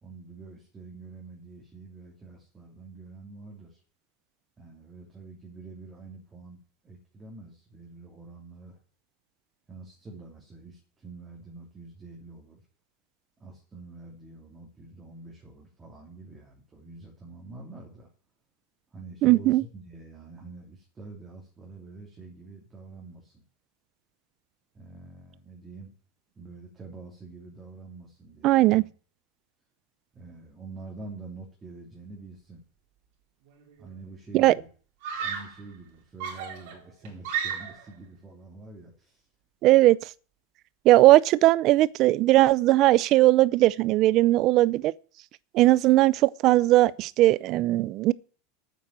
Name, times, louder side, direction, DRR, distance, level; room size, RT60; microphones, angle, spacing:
voice 1, 0.0-3.8 4.6-8.8 9.7-12.6 13.4-18.1 18.9-23.4 24.7-25.9 26.3-28.9 30.1-32.6 33.8-34.7 35.2-39.3, right 3 dB, 15° right, 2.9 m, -46 dB
voice 2, 19.2-19.6 28.4-28.8 34.3-34.5 39.6-40.0 40.8-44.9 45.5-48.1, right 17 dB, 40° right, 0.5 m, -19 dB
Screaming, 33.5-33.9 35.0-35.6 36.2-37.9, right 7 dB, 60° right, 4.2 m, -34 dB
9.2 x 8.2 x 9.2 m
supercardioid pair, 155°, 0 cm